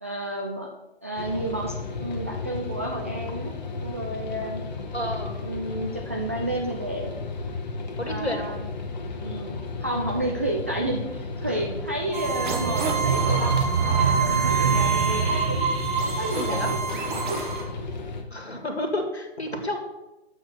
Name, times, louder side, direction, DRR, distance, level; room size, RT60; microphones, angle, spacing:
voice 1, 0.0-0.7 1.0-3.5 3.8-4.6 5.4-7.1 8.0-8.7 9.2-15.7 16.0-16.8 17.3-17.4 17.8-17.9, right 1 dB, 15° right, -1 dB, 0.3 m, -31 dB
sound 1, 1.2-18.2, left 4 dB, 40° left, 1.2 m, -34 dB
voice 2, 4.9-5.4 8.0-8.5 11.5-11.6 16.4-16.7 18.3-19.8, left 1 dB, 75° left, 4 dB, 2.0 m, -30 dB
sound 2, 12.1-17.6, right 5 dB, 45° right, 1.7 m, -27 dB
sound 3, 12.2-17.2, right 5 dB, 65° right, 1.5 m, -26 dB
7.2 x 6.3 x 6.5 m, 1.0 s
figure-of-eight pair, 125°, 33 cm